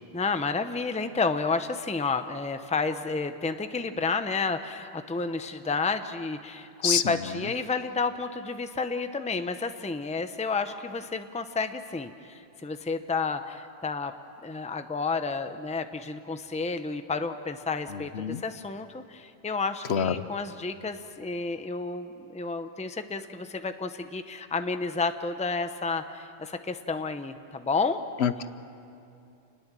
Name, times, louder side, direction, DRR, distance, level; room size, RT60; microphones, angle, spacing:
voice 1, 0.1-14.1 14.4-28.0, left 4 dB, 5° left, 8 dB, 0.7 m, -31 dB
voice 2, 6.8-7.1 17.9-18.4 19.9-20.3 28.2-28.5, left 7 dB, 65° left, 12 dB, 1.0 m, -26 dB
28.0 x 20.5 x 7.5 m, 2.6 s
omnidirectional pair, 1.2 m